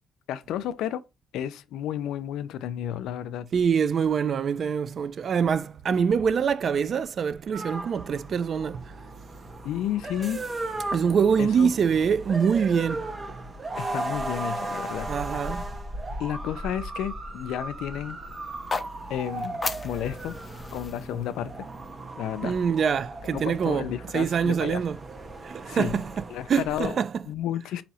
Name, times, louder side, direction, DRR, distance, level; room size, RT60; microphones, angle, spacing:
voice 1, 0.3-1.0 1.3-3.5 9.6-10.4 11.4-11.7 13.8-15.1 16.2-18.2 19.1-20.4 20.7-21.5 22.2-22.6 23.3-24.8 25.7-26.0 26.3-27.0 27.3-27.8, left 11 dB, 90° left, 0.4 m, -32 dB
voice 2, 3.5-8.9 10.9-13.0 15.1-15.6 22.4-23.9 24.1-25.0 25.4-27.2, right 6 dB, 55° right, 0.3 m, -25 dB
sound 1, 7.5-26.9, right 2 dB, 30° right, 0.9 m, -36 dB
sound 2, 18.5-22.6, left 4 dB, 30° left, 0.5 m, -37 dB
4.2 x 2.7 x 4.1 m
cardioid pair, 90°, 0 cm